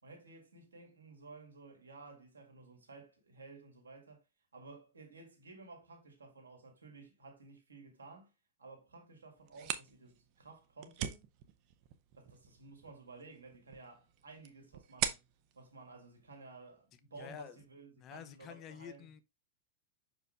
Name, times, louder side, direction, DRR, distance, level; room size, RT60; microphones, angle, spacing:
voice 1, 0.0-4.2 4.5-8.3 8.6-11.2 12.1-15.2 15.5-19.1, right 3 dB, 75° right, 2.3 m, -54 dB
sound 1, 9.4-16.9, right 11 dB, 45° right, 0.8 m, -44 dB
voice 2, 17.2-17.6 18.0-19.2, left 9 dB, 35° left, 0.7 m, -49 dB
6.3 x 4.8 x 3.5 m
figure-of-eight pair, 90°, 0 cm